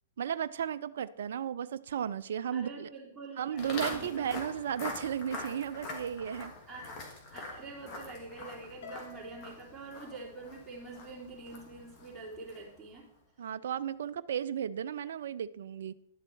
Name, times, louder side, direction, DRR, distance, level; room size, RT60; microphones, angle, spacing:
voice 1, 0.2-2.9 3.4-6.5 13.4-15.9, right 9 dB, 65° right, 13 dB, 0.4 m, -34 dB
voice 2, 2.5-4.2 6.7-7.0 7.3-13.1, right 3 dB, 10° right, -8 dB, 3.2 m, -46 dB
Walk footsteps, 3.6-12.8, left 3 dB, 35° left, 2.6 m, -44 dB
Harp, 8.8-11.3, left 3 dB, 65° left, 1.7 m, -52 dB
11.0 x 7.5 x 4.6 m, 0.70 s
hypercardioid pair, 115°, 0 cm